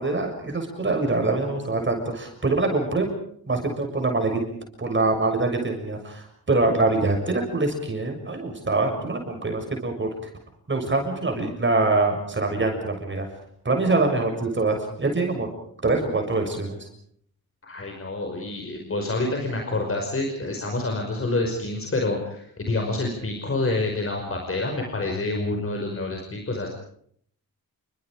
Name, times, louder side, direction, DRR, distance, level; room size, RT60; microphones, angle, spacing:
voice 1, 0.0-3.1 3.5-4.4 4.8-10.1 10.7-13.3 13.7-15.5 15.8-16.8, right 3 dB, 30° right, 3 dB, 6.8 m, -24 dB
voice 2, 17.6-26.7, left 2 dB, 35° left, 2 dB, 5.5 m, -27 dB
29.0 x 25.5 x 5.0 m, 0.64 s
wide cardioid pair, 130°, 36 cm